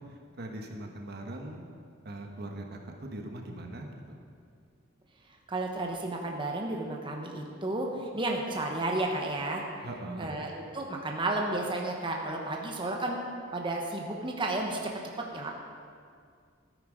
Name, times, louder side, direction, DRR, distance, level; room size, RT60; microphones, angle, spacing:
voice 1, 0.0-1.6 2.0-4.2 9.8-10.3, right 1 dB, 55° right, 2 dB, 1.2 m, -41 dB
voice 2, 5.5-9.6 10.2-13.2 13.5-14.9 15.3-15.5, right 2 dB, 25° right, 0 dB, 1.1 m, -32 dB
13.0 x 9.6 x 5.1 m, 2.2 s
head